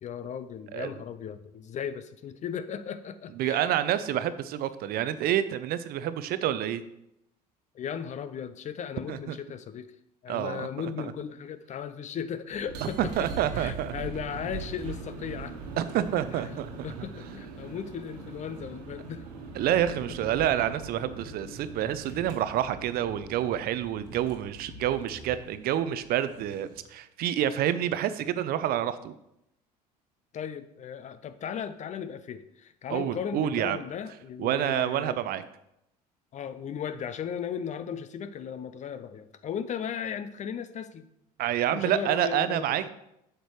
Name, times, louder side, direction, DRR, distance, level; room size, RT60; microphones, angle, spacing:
voice 1, 0.0-3.7 7.7-9.9 10.2-13.3 13.5-15.6 16.3-16.5 16.8-19.3 19.7-19.8 20.5-20.7 30.3-35.2 36.3-41.1 41.7-42.9, left 8 dB, 35° left, 12 dB, 0.5 m, -36 dB
voice 2, 3.4-6.8 9.1-9.4 10.3-10.7 12.8-13.9 15.8-16.7 19.5-29.1 32.9-33.8 34.4-35.4 41.4-42.9, right 11 dB, 45° right, 13 dB, 0.5 m, -28 dB
sound 1, 12.5-26.9, right 3 dB, 75° right, 1.3 m, -42 dB
7.9 x 6.6 x 3.1 m, 0.82 s
hypercardioid pair, 70°, 21 cm